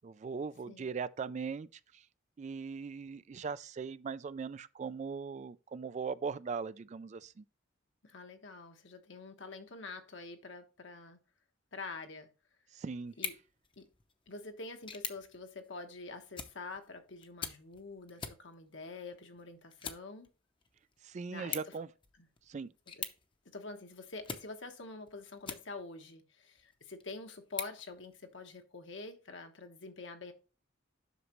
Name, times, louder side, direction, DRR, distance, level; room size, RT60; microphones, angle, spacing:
voice 1, 0.0-2.1 2.4-7.4 12.7-13.2 21.0-21.9 22.5-22.7, right 5 dB, 35° right, 0.3 m, -40 dB
voice 2, 8.0-11.2 11.7-12.3 13.2-13.3 13.8-13.9 14.3-20.3 21.3-21.6 23.5-30.3, left 3 dB, 65° left, 1.2 m, -46 dB
sound 1, 13.1-26.1 26.6-28.6, left 6 dB, 25° left, 0.7 m, -47 dB
8.1 x 6.1 x 3.1 m
head